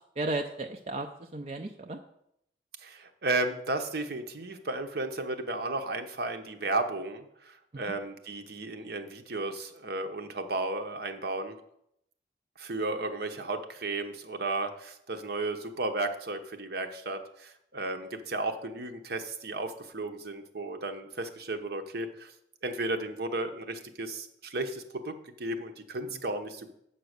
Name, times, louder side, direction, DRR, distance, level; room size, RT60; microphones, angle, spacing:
voice 1, 0.2-2.0 7.7-7.8 26.0-26.2, right 2 dB, 35° right, 3 dB, 0.5 m, -35 dB
voice 2, 2.8-11.6 12.6-22.3 22.6-26.7, right 2 dB, 60° right, 6 dB, 0.9 m, -34 dB
8.1 x 5.7 x 6.5 m, 0.75 s
head